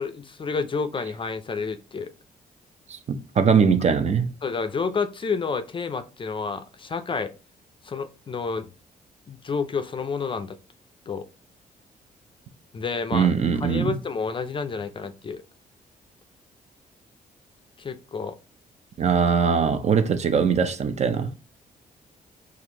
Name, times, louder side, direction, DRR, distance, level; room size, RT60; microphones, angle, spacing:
voice 1, 0.0-2.1 4.4-7.3 7.8-8.7 9.3-10.6 11.1-11.3 12.7-13.3 13.6-15.4 17.8-18.4, left 5 dB, 35° left, 0.4 m, -29 dB
voice 2, 2.9-4.3 13.1-13.9 19.0-21.4, right 6 dB, 45° right, 0.5 m, -21 dB
4.2 x 2.5 x 2.8 m
cardioid pair, 85°, 16 cm